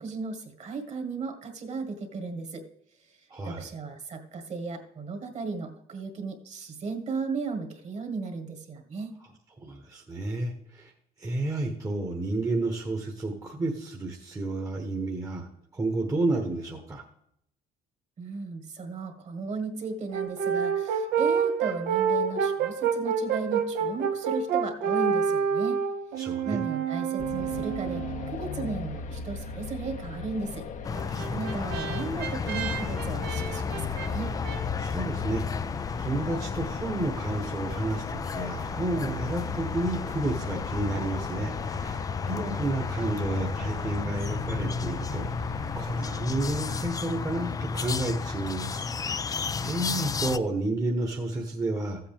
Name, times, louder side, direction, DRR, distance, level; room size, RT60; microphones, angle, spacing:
voice 1, 0.0-2.6 3.1-3.2 3.4-9.1 18.2-25.8 26.1-30.7 31.0-34.3, right 4 dB, 40° right, 5 dB, 1.8 m, -35 dB
voice 2, 3.3-3.7 9.6-10.9 11.2-17.0 26.2-26.6 31.1-31.8 34.8-35.4 36.0-45.3 45.7-52.0, right 2 dB, 20° right, 1 dB, 1.1 m, -31 dB
Brass instrument, 20.1-28.4 30.9-34.6, right 6 dB, 75° right, 1.0 m, -28 dB
sound 1, 27.2-46.9, left 4 dB, 50° left, 0.8 m, -39 dB
sound 2, 30.8-50.4, left 5 dB, 20° left, 0.3 m, -33 dB
13.5 x 7.9 x 3.5 m, 0.74 s
cardioid pair, 110°, 17 cm